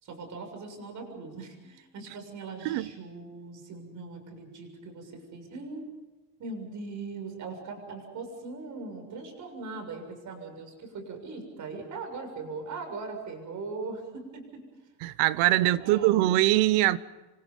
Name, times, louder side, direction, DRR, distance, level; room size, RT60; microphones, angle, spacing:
voice 1, 0.0-5.9 6.4-14.6 15.4-16.2, right 3 dB, 40° right, 7.0 m, -40 dB
voice 2, 15.0-17.0, right 16 dB, 85° right, 1.1 m, -23 dB
28.5 x 25.0 x 5.5 m
cardioid pair, 150°, 44 cm